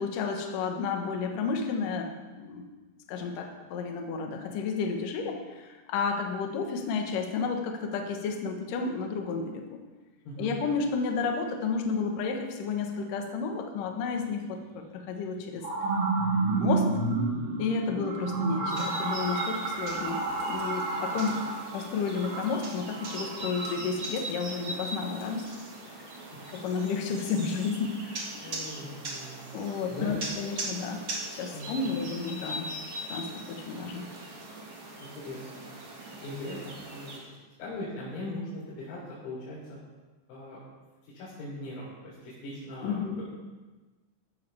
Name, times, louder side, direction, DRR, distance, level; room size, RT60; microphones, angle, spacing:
voice 1, 0.0-2.1 2.4-2.7 3.1-9.8 10.4-15.6 16.6-16.9 17.6-21.4 21.7-25.6 26.5-28.0 28.3-28.6 29.5-31.0 31.3-32.7 33.1-34.1 42.8-43.2, left 5 dB, 65° left, 2 dB, 2.2 m, -31 dB
sound 1, 14.4-14.5 15.2-23.7, right 3 dB, 65° right, 3.8 m, -30 dB
sound 2, 18.7-37.2, right 1 dB, 50° right, 1.6 m, -40 dB
voice 2, 28.0-29.5 29.9-30.1 31.5-31.9 35.2-35.8 36.1-36.6 36.9-37.3 37.6-39.6 40.3-40.6 41.1-43.0, left 1 dB, 85° left, -9 dB, 6.3 m, -40 dB
16.5 x 12.5 x 3.5 m, 1.3 s
omnidirectional pair, 5.7 m